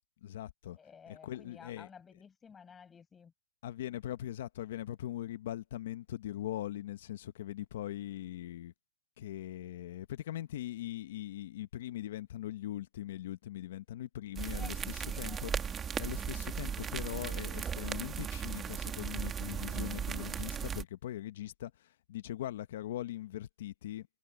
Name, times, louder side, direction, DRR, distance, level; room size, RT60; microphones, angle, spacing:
voice 1, 0.2-0.8 1.1-1.9 3.6-8.7 9.2-15.5 16.0-24.1, left 13 dB, 60° left, 1.3 m, -41 dB
voice 2, 0.8-3.3 14.5-15.5, left 6 dB, 15° left, 6.1 m, -54 dB
sound 1, 14.4-20.8, right 7 dB, 15° right, 1.9 m, -37 dB
hypercardioid pair, 160°, 0 cm